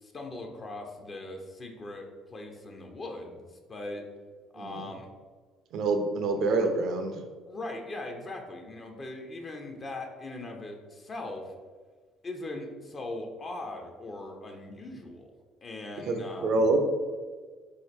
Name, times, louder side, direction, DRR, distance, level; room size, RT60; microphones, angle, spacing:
voice 1, 0.0-3.4 3.7-4.0 4.5-5.1 7.5-11.5 12.2-15.3 15.6-16.6, left 2 dB, 40° left, 3 dB, 0.6 m, -40 dB
voice 2, 4.6-4.9 5.7-7.2 16.1-16.8, right 3 dB, 60° right, 5 dB, 0.5 m, -26 dB
3.8 x 2.5 x 4.2 m, 1.5 s
hypercardioid pair, 55°, 0 cm